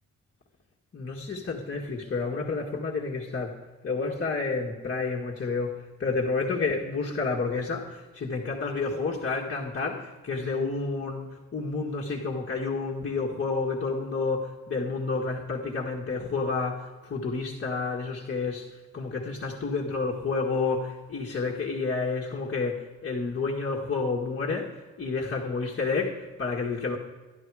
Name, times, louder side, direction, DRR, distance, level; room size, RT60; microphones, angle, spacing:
voice 1, 0.9-3.6 3.8-27.0, left 4 dB, 40° left, -3 dB, 1.8 m, -30 dB
12.0 x 11.0 x 4.8 m, 1.3 s
cardioid pair, 90°, 30 cm